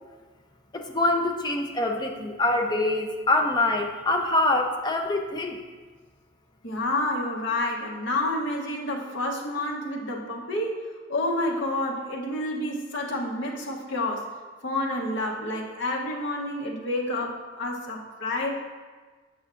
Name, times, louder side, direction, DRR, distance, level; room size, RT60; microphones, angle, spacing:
voice 1, 0.7-5.6, left 2 dB, 20° left, 2 dB, 0.4 m, -25 dB
voice 2, 6.6-14.3 14.6-18.5, left 1 dB, 55° left, -2 dB, 0.9 m, -29 dB
6.6 x 5.9 x 2.4 m, 1.4 s
head